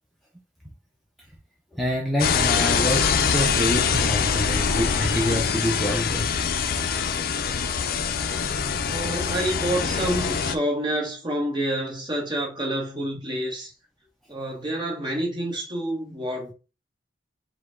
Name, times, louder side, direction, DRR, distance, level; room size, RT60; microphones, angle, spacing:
voice 1, 1.7-6.3, equal, ahead, 0.6 m, -27 dB
sound 1, 2.2-10.6, left 6 dB, 55° left, 0.4 m, -24 dB
voice 2, 8.9-13.7 14.3-16.5, right 1 dB, 25° right, 1.3 m, -28 dB
5.0 x 2.3 x 3.7 m
head